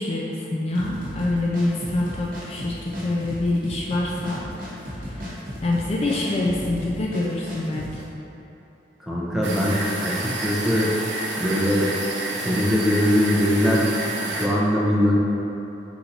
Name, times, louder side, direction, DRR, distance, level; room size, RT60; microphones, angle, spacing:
voice 1, 0.0-4.4 4.8-5.4 5.6-8.0, left 2 dB, 35° left, -3 dB, 0.3 m, -26 dB
sound 1, 0.7-8.0, equal, 50° right, 1.1 m, -35 dB
voice 2, 9.0-11.0 11.4-11.9 12.4-13.9 14.3-15.2, left 1 dB, ahead, -7 dB, 0.6 m, -21 dB
sound 2, 9.4-14.5, right 2 dB, 85° right, 0.6 m, -30 dB
4.4 x 2.6 x 4.0 m, 3.0 s
head